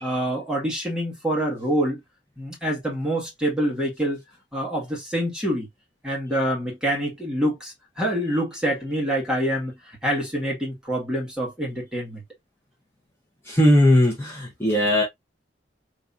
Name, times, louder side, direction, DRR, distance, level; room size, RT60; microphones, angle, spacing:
voice 1, 0.0-2.0 2.4-4.2 4.5-5.7 6.0-9.8 10.0-12.2, equal, 5° right, 1.4 m, -26 dB
voice 2, 13.4-15.0, left 1 dB, 15° left, 0.9 m, -19 dB
3.8 x 2.7 x 2.6 m
head